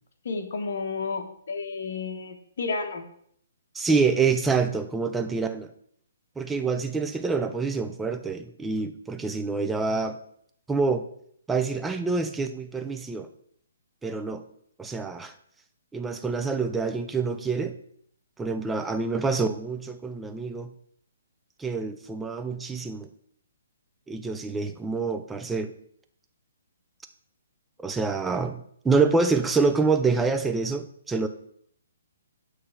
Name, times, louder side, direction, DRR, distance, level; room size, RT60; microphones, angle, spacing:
voice 1, 0.2-3.1, left 4 dB, 60° left, 4 dB, 1.1 m, -31 dB
voice 2, 3.7-5.7 6.4-10.2 10.7-11.0 11.5-13.3 14.0-14.4 14.8-15.3 15.9-17.7 18.4-20.7 21.6-23.1 24.1-25.7 27.8-31.3, right 4 dB, 5° right, 7 dB, 0.4 m, -26 dB
6.7 x 3.3 x 5.6 m, 0.66 s
hypercardioid pair, 150°, 0 cm